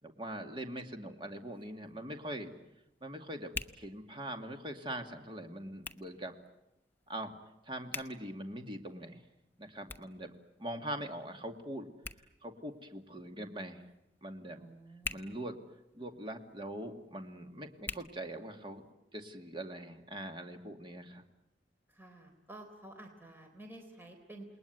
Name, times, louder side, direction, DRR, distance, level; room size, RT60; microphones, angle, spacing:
voice 1, 0.0-2.5 3.0-6.3 7.1-7.3 7.6-9.2 9.6-10.3 10.6-11.9 12.4-13.8 14.2-14.6 15.1-15.6 15.9-18.8 19.1-21.2, right 1 dB, 30° right, 5 dB, 2.4 m, -42 dB
Hands, 1.3-18.9, left 3 dB, 10° left, 1.0 m, -50 dB
voice 2, 14.6-15.4 21.9-24.5, right 1 dB, 10° right, 3 dB, 4.0 m, -51 dB
28.5 x 21.0 x 9.5 m, 0.91 s
head